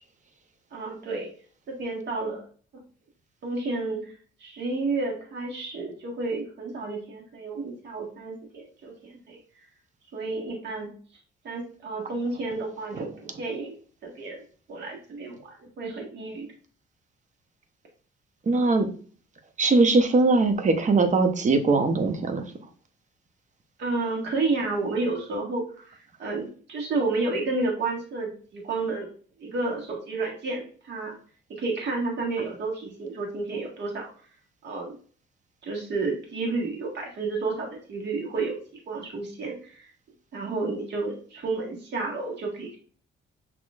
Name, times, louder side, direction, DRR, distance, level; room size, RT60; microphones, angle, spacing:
voice 1, 0.7-1.3 1.7-2.4 2.7-2.8 3.4-4.1 4.4-9.4 10.1-11.0 11.4-13.8 14.0-14.4 14.7-16.5 23.8-29.1 29.4-31.2 31.5-34.1 34.6-34.9 35.6-38.6 38.9-39.9 40.3-42.8, right 3 dB, 60° right, -1 dB, 1.6 m, -31 dB
voice 2, 18.5-18.9 19.6-22.4, right 3 dB, 40° right, 7 dB, 0.8 m, -21 dB
6.2 x 3.0 x 2.4 m, 0.42 s
cardioid pair, 90°, 20 cm